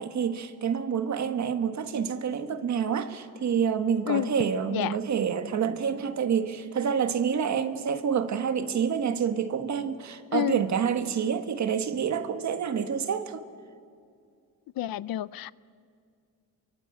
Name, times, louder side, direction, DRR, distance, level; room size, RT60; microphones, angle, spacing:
voice 1, 0.0-13.5, right 7 dB, 50° right, 1.5 m, -28 dB
voice 2, 10.3-10.6 14.8-15.5, left 14 dB, 70° left, 0.6 m, -29 dB
29.0 x 23.5 x 8.4 m
wide cardioid pair, 175°, 37 cm